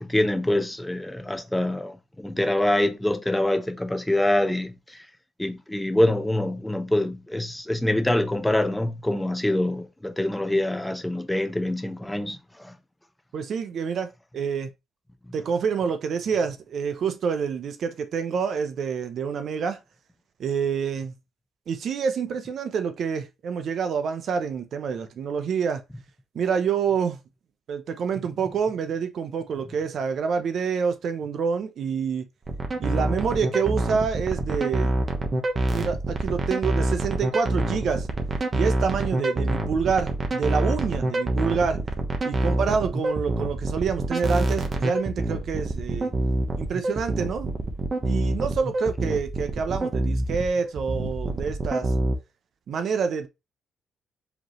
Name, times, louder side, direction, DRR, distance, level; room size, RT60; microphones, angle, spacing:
voice 1, 0.0-5.1 5.4-12.7, left 1 dB, 10° left, 0.7 m, -25 dB
voice 2, 13.3-14.7 15.3-19.8 20.4-21.1 21.7-25.8 26.3-27.2 27.7-32.3 32.8-34.9 35.7-38.1 38.5-41.8 42.2-46.1 46.6-47.5 48.0-51.9 52.7-53.3, right 6 dB, 60° right, 0.6 m, -27 dB
sound 1, 32.5-52.1, right 2 dB, 35° right, 1.0 m, -26 dB
5.1 x 3.0 x 3.0 m
cardioid pair, 90°, 0 cm